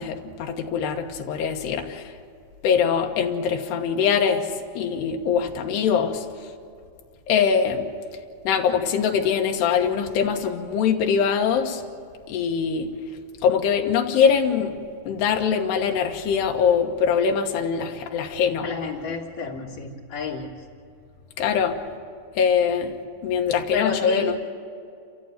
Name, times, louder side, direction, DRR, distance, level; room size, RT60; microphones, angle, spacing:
voice 1, 0.0-2.1 2.6-4.5 4.8-6.2 7.3-7.9 8.4-11.8 12.3-12.9 13.4-14.7 15.1-18.7 21.4-21.8 22.4-22.9 23.2-24.4, left 7 dB, 85° left, 3 dB, 3.3 m, -22 dB
voice 2, 18.6-20.5 23.7-24.4, left 5 dB, 60° left, -3 dB, 2.0 m, -30 dB
28.5 x 14.5 x 8.0 m, 2.4 s
omnidirectional pair, 4.7 m